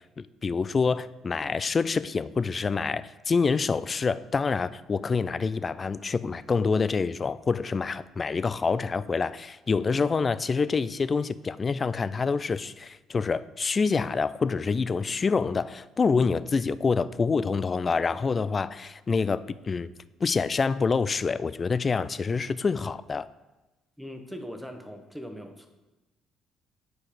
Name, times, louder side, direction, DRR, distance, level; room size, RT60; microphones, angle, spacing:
voice 1, 0.4-19.9 20.2-23.3, left 4 dB, 35° left, 16 dB, 0.3 m, -26 dB
voice 2, 24.0-25.7, equal, 5° right, 5 dB, 1.2 m, -40 dB
8.4 x 4.8 x 5.1 m, 1.1 s
hypercardioid pair, 50°, 0 cm